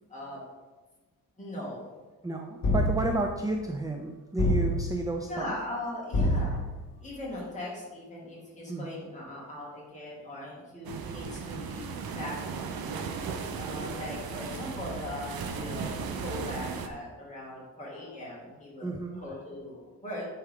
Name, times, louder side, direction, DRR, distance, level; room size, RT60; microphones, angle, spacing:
voice 1, 1.4-1.8 5.3-6.7 7.0-12.4 13.6-20.3, left 1 dB, 20° left, -5 dB, 2.3 m, -39 dB
voice 2, 2.2-5.5 8.7-9.1 18.8-19.2, right 2 dB, 10° right, 3 dB, 0.3 m, -32 dB
sound 1, 2.6-3.4 4.4-5.1 6.1-6.9, left 1 dB, 50° left, 1.9 m, -27 dB
sound 2, 10.8-16.9, right 5 dB, 75° right, 0.7 m, -36 dB
9.7 x 4.6 x 3.7 m, 1.3 s
wide cardioid pair, 165°, 36 cm